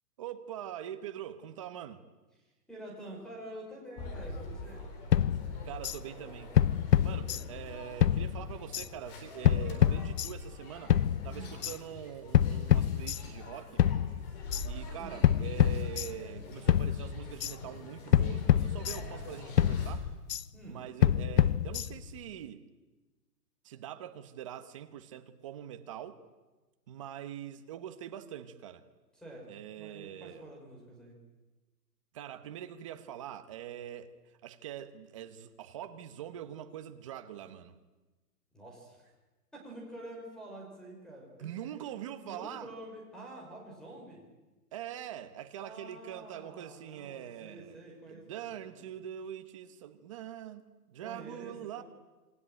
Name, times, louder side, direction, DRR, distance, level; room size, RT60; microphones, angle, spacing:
voice 1, 0.2-2.0 5.6-6.6 7.0-11.0 11.2-13.8 14.6-20.1 20.7-22.6 23.6-26.2 26.9-28.8 29.5-30.4 32.1-37.8 41.4-42.7 44.7-47.8 48.1-51.8, right 10 dB, 20° right, 1.0 m, -43 dB
voice 2, 2.4-4.9 7.1-7.5 8.3-8.5 11.3-11.6 15.0-15.2 20.5-20.8 29.1-31.2 38.5-39.1 39.5-41.6 42.2-44.3 45.6-48.8 51.0-51.8, right 1 dB, ahead, 5.3 m, -48 dB
sound 1, 4.0-20.0, left 2 dB, 25° left, 4.1 m, -45 dB
sound 2, 5.1-6.0 6.6-7.7 8.0-8.9 9.4-10.5 10.9-11.8 12.3-13.5 13.8-14.7 15.2-16.4 16.7-17.5 18.1-19.3 19.6-20.4 21.0-22.2, left 10 dB, 80° left, 1.0 m, -27 dB
27.5 x 22.5 x 9.1 m
hypercardioid pair, 170°, 48 cm